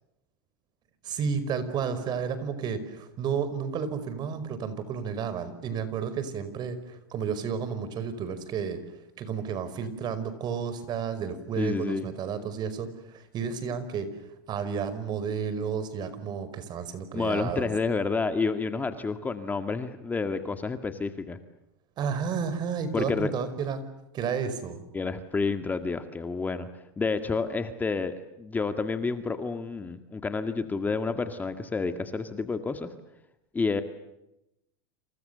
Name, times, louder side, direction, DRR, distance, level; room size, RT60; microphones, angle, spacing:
voice 1, 1.0-8.8 9.2-14.1 14.5-17.7 22.0-23.8 24.1-24.8, right 6 dB, 35° right, 13 dB, 5.0 m, -32 dB
voice 2, 11.6-12.0 17.1-21.4 22.9-23.3 24.9-26.7 27.0-32.9 33.5-33.8, left 4 dB, 15° left, 8 dB, 1.9 m, -29 dB
30.0 x 28.0 x 6.9 m, 0.87 s
supercardioid pair, 130°, 12 cm